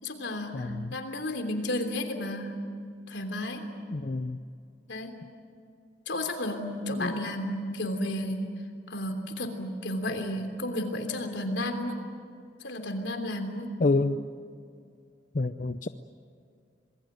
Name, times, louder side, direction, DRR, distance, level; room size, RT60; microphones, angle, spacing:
voice 1, 0.0-2.5 3.1-3.6 4.9-5.1 6.1-8.4 8.9-12.0 12.6-13.7, left 1 dB, 90° left, 6 dB, 3.3 m, -32 dB
voice 2, 0.5-1.0 3.9-4.4 7.0-7.3 13.8-14.2 15.3-15.9, left 3 dB, 45° left, 10 dB, 0.6 m, -28 dB
26.5 x 20.5 x 9.2 m, 2.3 s
head